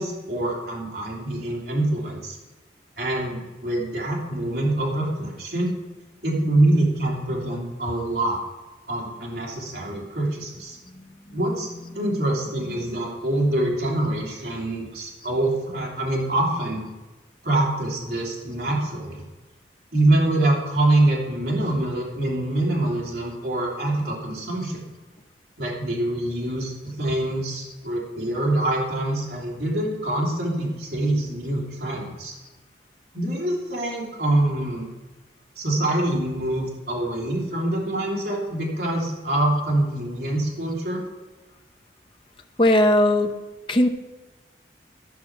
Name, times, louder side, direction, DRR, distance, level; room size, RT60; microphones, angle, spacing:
voice 1, 0.0-2.4 3.0-5.7 6.2-8.4 8.9-10.8 11.3-11.7 11.9-16.8 17.4-19.2 19.9-24.8 25.6-32.4 33.1-34.9 35.6-41.0, right 1 dB, 60° right, -3 dB, 2.7 m, -25 dB
voice 2, 42.6-43.4 43.7-43.9, left 1 dB, 30° left, 6 dB, 0.8 m, -19 dB
13.0 x 6.0 x 5.9 m, 1.2 s
head